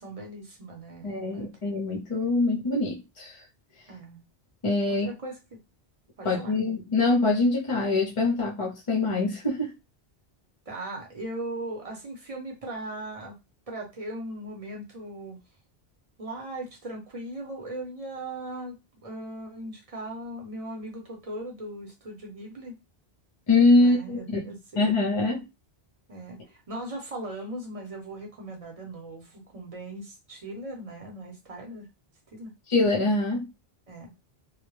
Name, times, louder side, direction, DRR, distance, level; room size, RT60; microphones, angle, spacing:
voice 1, 0.0-1.5 3.9-4.2 4.9-5.6 6.2-6.6 10.7-13.4 13.7-15.4 16.2-22.7 23.8-25.1 26.1-31.9 32.3-32.5 33.9-34.1, right 1 dB, 40° right, 0.7 m, -39 dB
voice 2, 1.0-3.4 4.6-5.1 6.2-9.7 23.5-25.4 32.7-33.5, left 2 dB, 40° left, 0.5 m, -24 dB
2.1 x 2.1 x 3.0 m
omnidirectional pair, 1.1 m